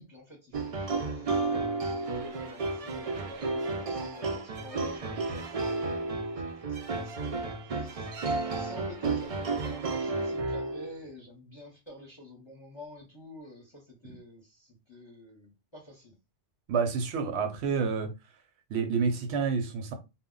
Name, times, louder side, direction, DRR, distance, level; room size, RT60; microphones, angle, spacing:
voice 1, 0.0-8.2 8.4-16.2, left 1 dB, 30° left, 0.7 m, -49 dB
sound 1, 0.5-11.0, right 3 dB, 60° right, 0.3 m, -32 dB
voice 2, 16.7-18.1 18.7-19.9, right 5 dB, 75° right, 0.8 m, -28 dB
2.1 x 2.0 x 3.7 m
omnidirectional pair, 1.2 m